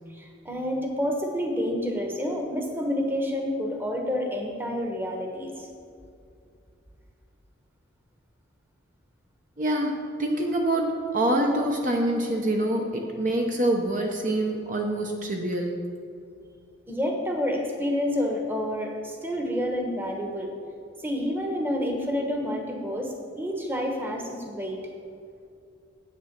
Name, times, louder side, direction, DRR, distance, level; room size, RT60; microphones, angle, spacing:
voice 1, 0.1-5.7 16.9-20.5 21.0-24.8, equal, 10° right, 1 dB, 1.0 m, -29 dB
voice 2, 9.6-15.9, right 1 dB, 40° right, 1 dB, 0.7 m, -26 dB
8.7 x 6.7 x 6.6 m, 2.5 s
head